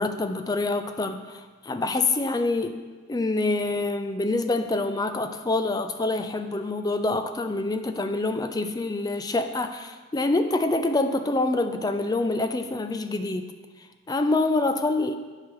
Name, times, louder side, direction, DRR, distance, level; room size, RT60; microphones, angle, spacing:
voice 1, 0.0-2.8 3.1-13.5 14.1-15.2, left 2 dB, 20° left, 8 dB, 0.4 m, -26 dB
13.0 x 4.9 x 3.1 m, 1.4 s
head